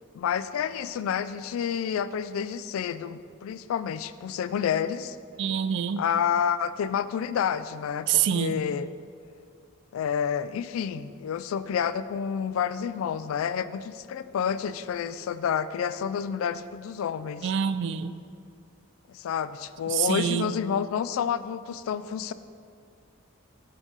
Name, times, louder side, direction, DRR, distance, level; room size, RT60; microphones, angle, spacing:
voice 1, 0.1-5.2 6.0-8.9 9.9-17.5 19.1-22.3, left 7 dB, 90° left, 15 dB, 0.3 m, -29 dB
voice 2, 5.4-6.0 8.1-8.6 17.4-18.1 19.9-20.5, right 8 dB, 60° right, 12 dB, 0.3 m, -26 dB
10.5 x 3.9 x 3.9 m, 2.2 s
head